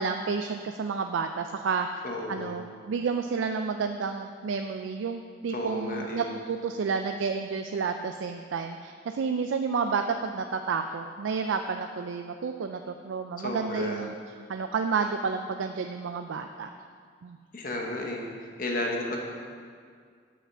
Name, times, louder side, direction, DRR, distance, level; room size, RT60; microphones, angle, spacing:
voice 1, 0.0-14.1 14.5-16.7 17.2-17.4, right 5 dB, 85° right, 6 dB, 0.4 m, -30 dB
voice 2, 2.0-2.6 5.5-6.3 13.4-14.1 17.5-19.2, left 1 dB, 45° left, 0 dB, 1.1 m, -33 dB
7.2 x 5.7 x 6.8 m, 2.1 s
head